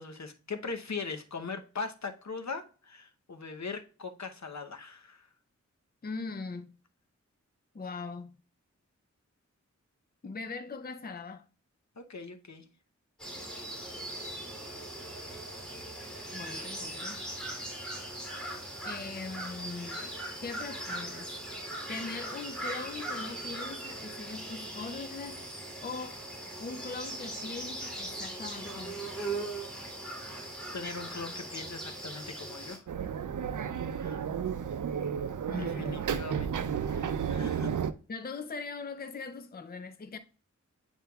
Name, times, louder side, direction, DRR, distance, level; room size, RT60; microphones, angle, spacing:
voice 1, 0.0-5.3 12.0-12.6 30.7-32.8 34.0-34.2 35.5-37.8, left 4 dB, 65° left, 0.8 m, -40 dB
voice 2, 6.0-6.8 7.7-8.4 10.2-11.5 16.3-17.3 18.8-20.1 20.4-21.3 21.9-25.5 25.8-26.2 26.6-29.2 35.5-36.0 38.1-40.2, left 4 dB, 30° left, 0.5 m, -41 dB
sound 1, 13.2-32.8, right 1 dB, 5° left, 2.9 m, -39 dB
sound 2, 32.9-37.9, right 7 dB, 85° right, 0.5 m, -32 dB
9.3 x 4.4 x 2.3 m
wide cardioid pair, 55°, 30 cm